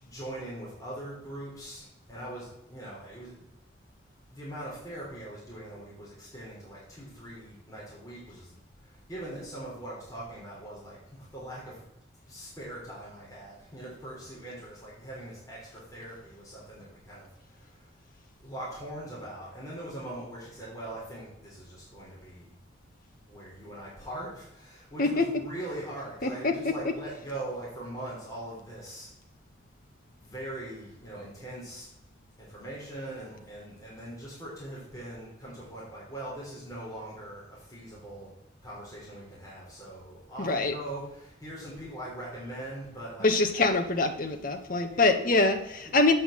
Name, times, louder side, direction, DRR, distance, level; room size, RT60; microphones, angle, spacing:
voice 1, 0.0-3.4 4.3-11.8 12.2-17.9 18.4-22.5 23.2-29.1 30.2-31.9 32.4-38.3 38.6-43.3 43.5-43.6 44.9-45.3, right 1 dB, 20° left, -7 dB, 3.7 m, -41 dB
voice 2, 26.2-26.5 40.4-40.7 43.2-46.1, left 3 dB, 50° left, 6 dB, 1.1 m, -24 dB
7.8 x 5.7 x 7.6 m, 0.87 s
head